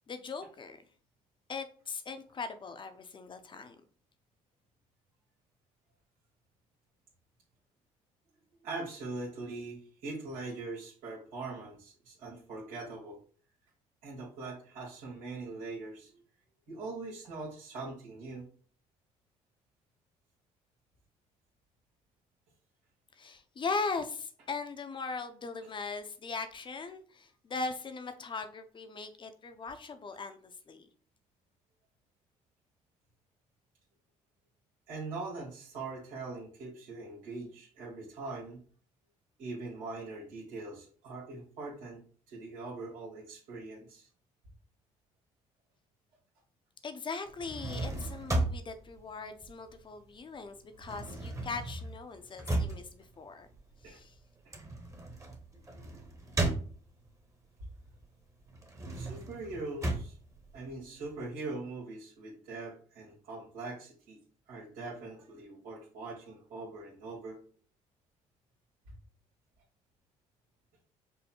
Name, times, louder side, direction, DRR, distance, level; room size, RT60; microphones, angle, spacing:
voice 1, 0.1-0.8 1.5-3.8 23.1-30.9 46.8-53.5 53.8-54.1, left 4 dB, 35° left, 9 dB, 0.7 m, -39 dB
voice 2, 8.6-13.2 14.0-16.2 16.7-18.4 34.9-38.6 39.4-42.0 42.3-44.1 53.8-54.0 54.4-54.6 58.9-60.1 60.5-64.2 64.5-67.4 68.9-69.0, right 3 dB, 75° right, -5 dB, 1.6 m, -42 dB
sound 1, 47.3-50.1 50.4-57.2 57.7-61.2, right 2 dB, 20° right, 1.2 m, -36 dB
5.5 x 2.1 x 4.4 m, 0.43 s
supercardioid pair, 80°, 14 cm